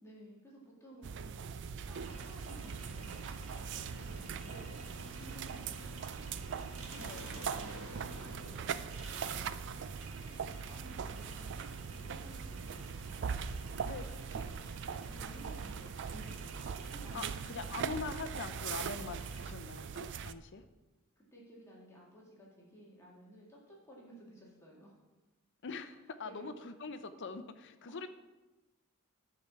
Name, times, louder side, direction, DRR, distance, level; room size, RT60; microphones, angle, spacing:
voice 1, 0.0-6.4 7.1-9.8 10.3-13.2 15.1-17.6 21.2-25.0 26.2-26.7 27.9-28.0, right 1 dB, 15° left, -4 dB, 2.1 m, -55 dB
sound 1, 1.0-20.3, right 6 dB, 55° right, 0.4 m, -41 dB
sound 2, 1.8-19.4, right 2 dB, 75° right, 1.6 m, -51 dB
voice 2, 7.0-7.3 13.8-14.5 17.1-20.6 25.6-28.1, left 4 dB, 55° left, 9 dB, 0.7 m, -43 dB
11.5 x 4.9 x 6.9 m, 1.1 s
head